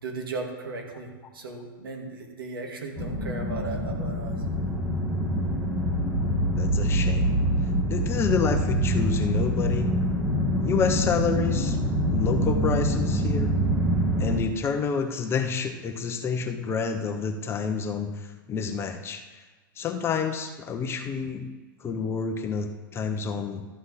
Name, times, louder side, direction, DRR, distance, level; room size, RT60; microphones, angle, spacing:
voice 1, 0.0-4.8, right 3 dB, 85° right, 1 dB, 2.3 m, -36 dB
sound 1, 3.0-14.4, equal, 5° right, 1.6 m, -25 dB
voice 2, 6.5-7.4 7.9-9.9 10.6-11.8 12.1-13.5 14.2-19.4 19.8-21.5 21.8-23.7, left 6 dB, 20° left, 6 dB, 0.9 m, -29 dB
13.0 x 7.7 x 4.2 m, 1.3 s
hypercardioid pair, 125°, 11 cm